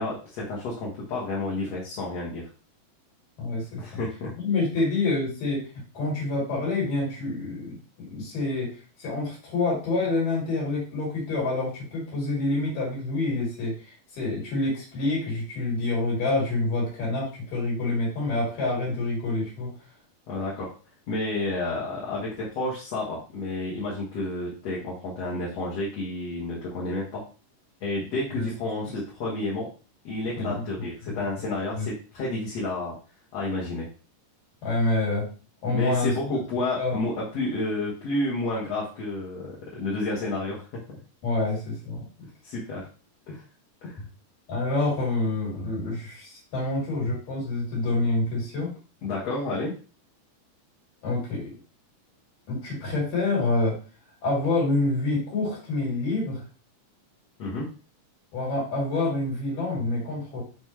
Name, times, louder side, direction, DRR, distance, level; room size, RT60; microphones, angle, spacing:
voice 1, 0.0-2.5 3.8-4.3 20.3-20.7 21.1-27.2 27.8-29.7 30.0-33.0 33.3-33.9 35.7-41.0 42.4-42.9 43.3-43.4 43.8-44.0 49.0-49.7 57.4-57.7, left 2 dB, 55° left, -5 dB, 2.3 m, -30 dB
voice 2, 3.4-3.8 4.4-5.7 6.0-8.7 9.0-19.7 28.3-28.5 30.4-30.9 31.7-31.9 34.6-35.3 35.6-36.1 36.8-37.0 41.2-42.0 44.5-48.7 51.0-51.5 52.5-53.8 54.2-56.4 58.3-60.4, left 2 dB, 80° left, -4 dB, 5.1 m, -27 dB
9.4 x 3.2 x 3.2 m, 0.36 s
omnidirectional pair, 3.8 m